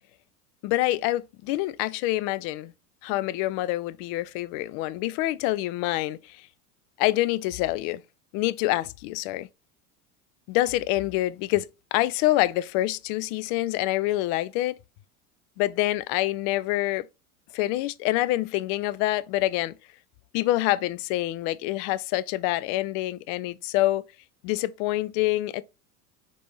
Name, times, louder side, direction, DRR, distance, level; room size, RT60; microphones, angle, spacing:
voice 1, 0.6-2.7 3.0-6.5 7.0-8.0 8.3-9.5 10.5-14.7 15.6-17.1 17.5-19.7 20.3-24.0 24.4-25.6, left 16 dB, 50° left, 0.5 m, -26 dB
4.1 x 3.3 x 3.2 m
hypercardioid pair, 85°, 46 cm